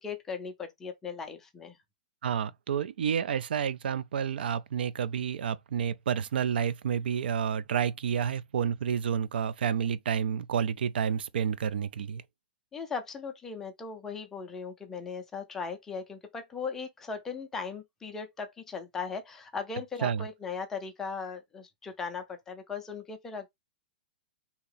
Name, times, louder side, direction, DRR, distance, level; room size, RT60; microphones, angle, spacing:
voice 1, 0.0-1.8 12.7-23.5, left 5 dB, 5° left, 0.4 m, -38 dB
voice 2, 2.2-12.2 20.0-20.2, right 8 dB, 85° right, 0.4 m, -30 dB
2.8 x 2.8 x 3.9 m
hypercardioid pair, 180°, 5 cm